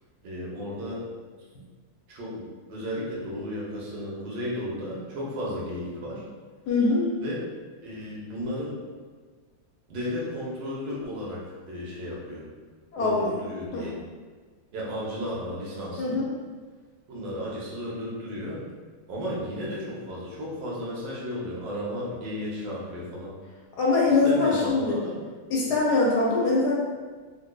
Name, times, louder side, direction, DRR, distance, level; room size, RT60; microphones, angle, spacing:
voice 1, 0.2-1.1 2.1-6.2 7.2-7.5 7.8-8.8 9.9-12.5 12.9-14.0 14.7-16.2 17.1-18.6 19.1-23.3 24.0-25.2, equal, 75° right, -5 dB, 1.4 m, -34 dB
voice 2, 6.7-7.1 12.9-13.4 13.7-13.9 16.0-16.3 23.8-25.0 25.5-26.7, left 3 dB, 70° left, -4 dB, 1.1 m, -23 dB
4.0 x 2.6 x 2.2 m, 1.4 s
omnidirectional pair, 2.0 m